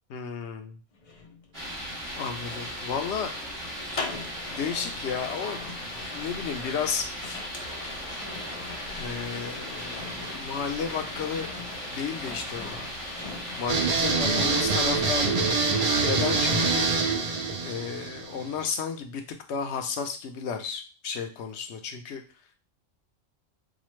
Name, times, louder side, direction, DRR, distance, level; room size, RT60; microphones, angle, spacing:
voice 1, 0.1-0.8 2.2-3.3 4.5-5.6 6.1-7.4 8.9-11.5 11.9-12.8 13.6-15.7 16.0-16.9 17.6-19.2 19.5-22.2, left 6 dB, 65° left, 5 dB, 0.9 m, -33 dB
sound 1, 0.9-15.1 15.4-16.8 17.1-17.5, left 3 dB, 50° left, 0.4 m, -42 dB
sound 2, 1.5-17.0, equal, 80° right, 2.7 m, -37 dB
sound 3, 13.7-18.6, right 4 dB, 45° right, 0.5 m, -25 dB
4.9 x 2.0 x 3.1 m, 0.34 s
omnidirectional pair, 1.3 m